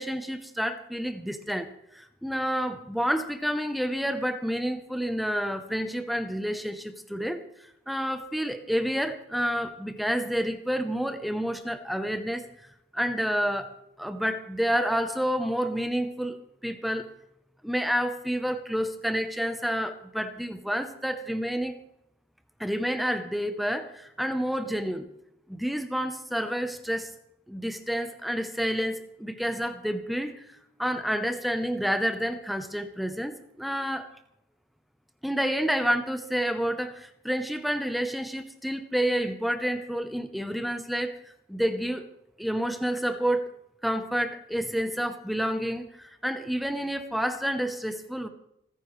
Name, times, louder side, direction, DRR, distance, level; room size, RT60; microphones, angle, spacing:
voice 1, 0.0-1.7 1.9-7.4 7.9-12.5 12.9-16.4 16.6-17.1 17.6-21.8 22.6-25.1 25.5-27.1 27.5-34.1 35.2-41.2 41.5-42.1 42.4-43.5 43.8-48.3, equal, ahead, 8 dB, 0.7 m, -29 dB
26.5 x 9.9 x 3.1 m, 0.81 s
head